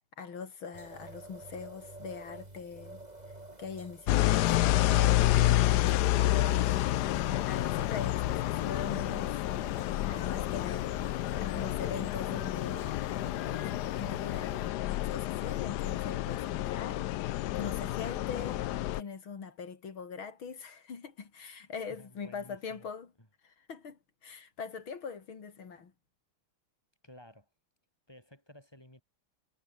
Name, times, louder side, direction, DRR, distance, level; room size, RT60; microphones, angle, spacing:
voice 1, 0.2-3.0 3.6-6.8 7.4-13.7 13.9-18.6 18.9-23.1 23.4-25.9, left 5 dB, 65° left, 3.3 m, -42 dB
sound 1, 0.7-14.7, right 2 dB, 20° right, 3.5 m, -49 dB
sound 2, 4.1-19.0, left 15 dB, 85° left, 0.9 m, -29 dB
voice 2, 22.0-22.9 23.2-23.3 27.0-27.5 28.1-29.0, left 1 dB, 10° left, 7.6 m, -54 dB
omnidirectional pair, 2.4 m